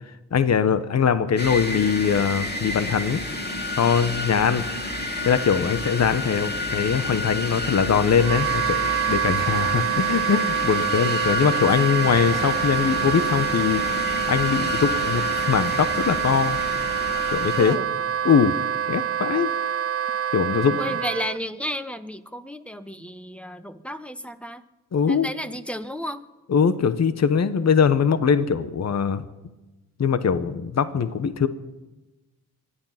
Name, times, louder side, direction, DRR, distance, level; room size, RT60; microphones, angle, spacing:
voice 1, 0.3-3.2 3.7-4.6 5.2-13.8 14.3-16.6 17.3-17.8 18.2-18.5 18.9-19.5 20.3-20.8 24.9-25.3 26.5-29.2 30.0-31.5, left 6 dB, 45° left, 13 dB, 1.1 m, -22 dB
sound 1, 1.4-17.8, left 2 dB, 30° left, 2.8 m, -30 dB
Wind instrument woodwind instrument, 8.2-21.4, right 9 dB, 40° right, 0.5 m, -26 dB
sound 2, 12.1-17.4, left 3 dB, 65° left, 3.0 m, -39 dB
voice 2, 20.8-24.6 25.1-26.2, equal, 5° left, 11 dB, 1.2 m, -33 dB
24.5 x 9.9 x 5.9 m, 1.1 s
supercardioid pair, 45°, 36 cm